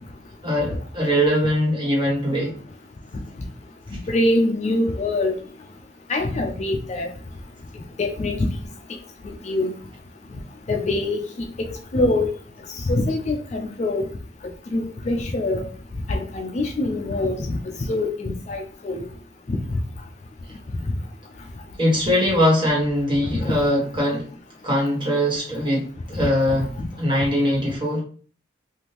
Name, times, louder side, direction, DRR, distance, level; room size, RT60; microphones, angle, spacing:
voice 1, 0.4-2.5 21.8-24.3 24.6-26.7 27.0-28.0, equal, 25° right, -5 dB, 1.5 m, -21 dB
voice 2, 3.9-5.4 6.1-7.1 8.0-8.5 9.2-9.8 10.7-11.3 11.6-12.4 12.8-14.0 14.7-15.6 16.1-17.6 17.9-19.0 19.5-19.6 23.3-23.5 26.2-26.3, left 2 dB, 35° left, 3 dB, 0.3 m, -24 dB
3.5 x 2.5 x 2.9 m, 0.42 s
head